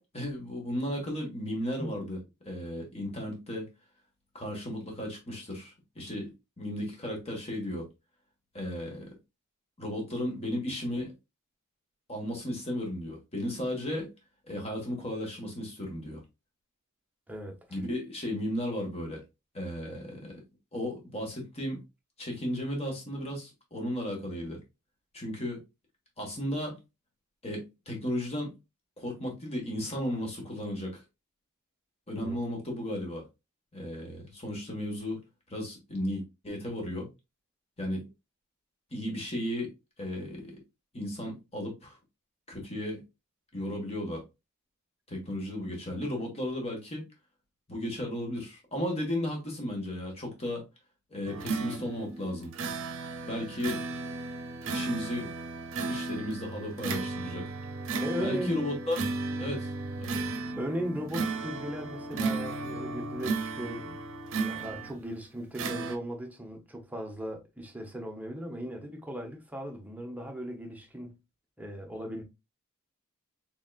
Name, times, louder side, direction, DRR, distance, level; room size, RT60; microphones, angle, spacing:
voice 1, 0.0-2.2 2.4-3.7 4.3-6.3 6.6-7.9 8.5-9.1 9.8-11.1 12.1-14.1 14.5-16.2 17.7-19.2 19.5-20.4 20.7-21.8 22.2-24.6 25.1-25.6 26.2-26.8 27.4-28.5 29.0-31.0 32.1-33.2 33.7-35.2 35.5-37.1 37.8-38.1 38.9-39.7 40.0-40.6 40.9-42.0 42.5-43.0 43.5-44.2 45.1-47.0 47.7-50.6 51.1-52.5 53.3-53.8 54.7-55.3 55.9-57.5 58.2-59.0 59.3-59.7 60.0-60.1, left 1 dB, 30° left, 1.5 m, -34 dB
voice 2, 17.3-17.6 32.2-32.4 58.0-58.8 60.6-64.0 64.3-71.1 71.6-72.2, equal, 5° right, 0.8 m, -37 dB
sound 1, 51.3-65.1 65.6-66.0, right 3 dB, 60° right, 0.7 m, -35 dB
4.0 x 3.7 x 2.3 m
head